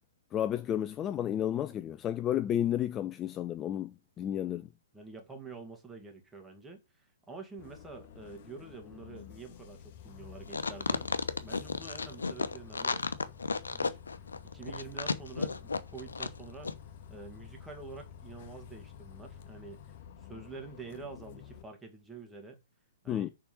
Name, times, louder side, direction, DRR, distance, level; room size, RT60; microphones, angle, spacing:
voice 1, 0.3-4.7 23.1-23.3, left 10 dB, 20° left, 0.4 m, -32 dB
voice 2, 4.9-11.1 11.4-13.0 13.7-14.0 14.4-16.7 17.1-22.6 23.0-23.3, right 4 dB, 10° right, 2.2 m, -47 dB
Bus, 7.6-21.6, left 8 dB, 40° left, 1.3 m, -50 dB
sound 1, 10.5-16.4 16.6-16.7, left 4 dB, 70° left, 0.9 m, -33 dB
6.9 x 5.2 x 7.1 m
figure-of-eight pair, 120°, 0 cm